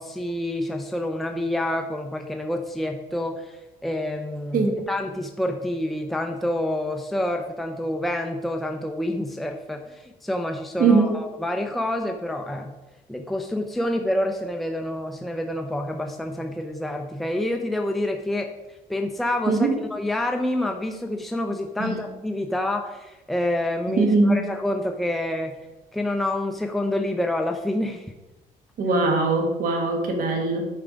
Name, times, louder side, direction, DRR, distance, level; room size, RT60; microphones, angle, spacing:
voice 1, 0.0-12.7 13.1-18.5 18.9-25.5 25.9-28.1, left 1 dB, ahead, 3 dB, 0.6 m, -28 dB
voice 2, 10.8-11.2 19.5-19.7 21.8-22.0 23.9-24.4 28.8-30.8, right 3 dB, 60° right, 3 dB, 1.9 m, -21 dB
9.1 x 4.8 x 5.2 m, 1.0 s
cardioid pair, 125°, 16 cm